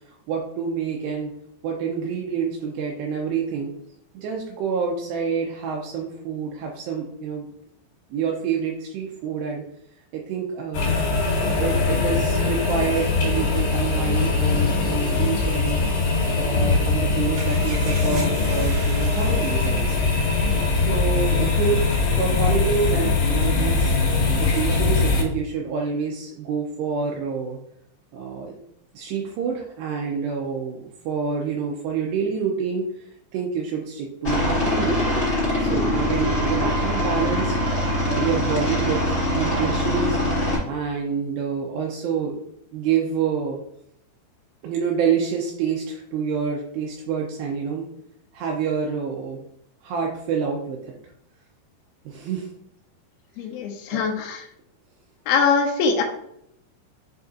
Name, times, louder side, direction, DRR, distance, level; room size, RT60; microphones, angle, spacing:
voice 1, 0.1-1.3 1.6-3.7 4.1-7.4 8.1-9.6 10.1-11.0 11.3-15.8 16.3-20.1 20.7-23.9 24.4-27.6 28.1-28.6 28.9-35.3 35.6-37.6 38.1-40.2 40.6-42.4 42.7-43.6 44.6-47.9 48.3-49.4 49.8-51.0 52.1-52.5 53.9-54.0, right 6 dB, 85° right, 0 dB, 2.6 m, -27 dB
sound 1, 10.7-25.2, left 3 dB, 70° left, 3.5 m, -21 dB
sound 2, 17.3-22.0, right 4 dB, 60° right, 2.4 m, -39 dB
Aircraft, 34.2-40.6, left 1 dB, 30° left, 1.3 m, -23 dB
voice 2, 53.4-54.5 55.3-56.0, left 5 dB, 90° left, 2 dB, 2.1 m, -22 dB
6.8 x 5.2 x 2.6 m, 0.74 s
omnidirectional pair, 5.5 m